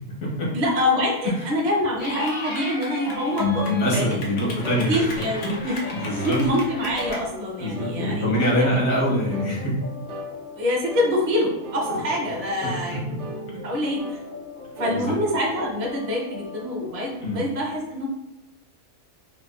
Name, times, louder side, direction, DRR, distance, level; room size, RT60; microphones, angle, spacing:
voice 1, 0.5-4.2 4.9-8.8 10.5-13.0 13.6-14.0 14.8-18.1, left 1 dB, 35° right, -3 dB, 0.6 m, -25 dB
Clapping / Cheering, 2.0-7.2, left 2 dB, 85° left, 1.2 m, -35 dB
sound 1, 3.0-17.3, left 1 dB, 55° left, 0.6 m, -40 dB
voice 2, 3.4-5.1 5.6-6.4 7.6-9.7 11.9-12.0 12.6-12.7 14.9-15.1 17.2-17.4, equal, 70° left, -4 dB, 1.5 m, -24 dB
sound 2, 3.9-4.1 4.6-4.9 5.4-5.6 6.2-6.4 7.0-7.2 7.7-8.0 8.5-8.8 9.3-9.5 10.1-10.3 10.9-11.1 11.6-11.9 12.4-12.7 13.2-13.4 14.0-14.2 14.8-15.0 15.5-15.8, right 1 dB, 65° right, 0.8 m, -37 dB
4.9 x 2.2 x 2.4 m, 0.93 s
omnidirectional pair, 1.5 m